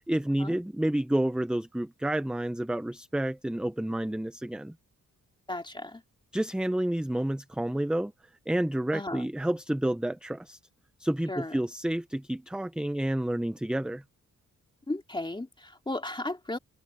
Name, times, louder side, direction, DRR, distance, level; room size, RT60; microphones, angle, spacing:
voice 1, 0.0-4.7 6.3-8.1 8.5-10.6 11.0-14.0, right 1 dB, 5° right, 0.5 m, -29 dB
voice 2, 5.5-6.0 8.9-9.3 11.3-11.6 14.9-16.6, left 2 dB, 15° left, 2.7 m, -35 dB
open air
wide cardioid pair, 130°, 32 cm